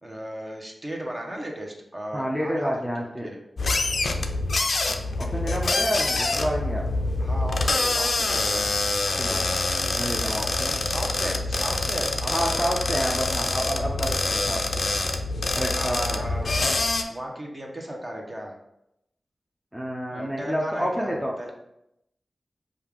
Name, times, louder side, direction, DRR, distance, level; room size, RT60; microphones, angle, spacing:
voice 1, 0.0-2.7 3.0-3.4 7.2-8.7 10.8-12.7 15.7-16.8 17.1-18.5 20.1-21.5, equal, 25° right, 0 dB, 0.9 m, -35 dB
voice 2, 2.1-3.3 5.2-6.8 9.2-9.4 9.9-10.9 12.3-14.9 15.5-16.3 19.7-21.5, equal, 5° right, -3 dB, 0.6 m, -29 dB
sound 1, 3.6-17.0, left 2 dB, 65° left, 0.4 m, -26 dB
5.4 x 2.4 x 3.5 m, 0.82 s
wide cardioid pair, 65°, 0 cm